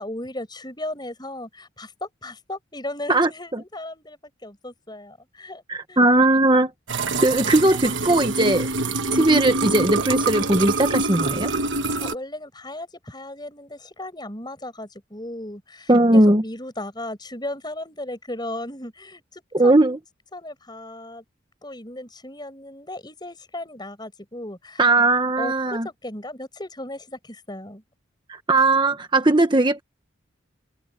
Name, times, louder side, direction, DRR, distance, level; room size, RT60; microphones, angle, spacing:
voice 1, 0.0-5.6 5.9-6.0 12.0-20.0 20.3-21.2 21.6-24.8 25.4-27.8, left 1 dB, 20° left, 6.9 m, -36 dB
voice 2, 3.1-3.6 5.7-6.7 7.2-8.7 9.1-11.5 15.9-16.4 19.5-20.0 24.8-25.9 28.3-29.8, right 2 dB, 25° right, 1.3 m, -18 dB
sound 1, 6.9-12.1, right 3 dB, 65° right, 1.3 m, -25 dB
open air
head